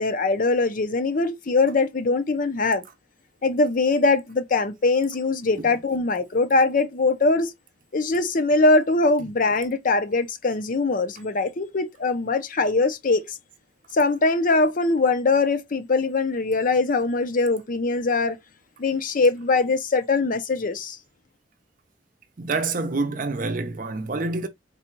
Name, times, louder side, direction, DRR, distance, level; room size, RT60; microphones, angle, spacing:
voice 1, 0.0-2.8 3.4-7.5 7.9-13.4 13.9-18.4 18.8-21.0, left 3 dB, 45° left, 0.6 m, -22 dB
voice 2, 22.4-24.5, right 3 dB, 45° right, 0.6 m, -27 dB
4.0 x 2.3 x 4.4 m
head